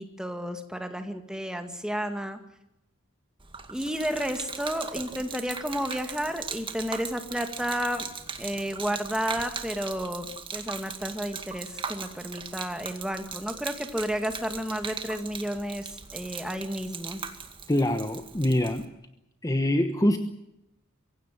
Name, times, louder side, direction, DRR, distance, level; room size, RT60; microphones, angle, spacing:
voice 1, 0.0-2.4 3.7-8.1 8.4-17.2, equal, 5° right, 6 dB, 2.1 m, -32 dB
Gurgling / Liquid, 3.4-18.9, right 5 dB, 25° right, 2.1 m, -39 dB
voice 2, 17.7-18.9 19.4-20.2, left 1 dB, 15° left, 7 dB, 1.1 m, -24 dB
24.0 x 16.5 x 9.4 m, 0.88 s
head